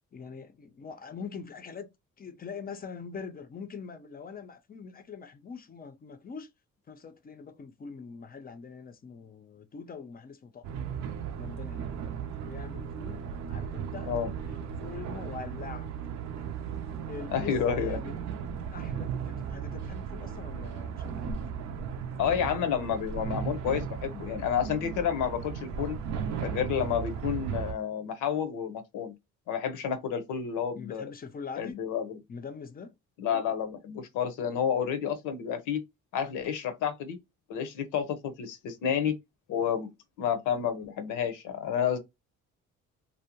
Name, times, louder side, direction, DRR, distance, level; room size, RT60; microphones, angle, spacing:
voice 1, 0.1-1.9 2.2-6.5 6.9-10.7 11.4-12.0 12.4-14.1 14.5-15.9 17.0-18.2 18.7-21.4 30.8-31.8 32.3-32.9, left 5 dB, 30° left, 0.5 m, -43 dB
sound 1, 10.6-27.7, right 7 dB, 65° right, 0.5 m, -36 dB
voice 2, 17.3-18.0 22.2-26.0 26.4-29.1 29.5-31.0 31.6-32.2 33.2-35.8 36.1-37.2 37.5-39.1 39.5-39.9 40.2-42.0, left 8 dB, 90° left, 0.7 m, -30 dB
2.6 x 2.0 x 2.8 m
cardioid pair, 90°, 30 cm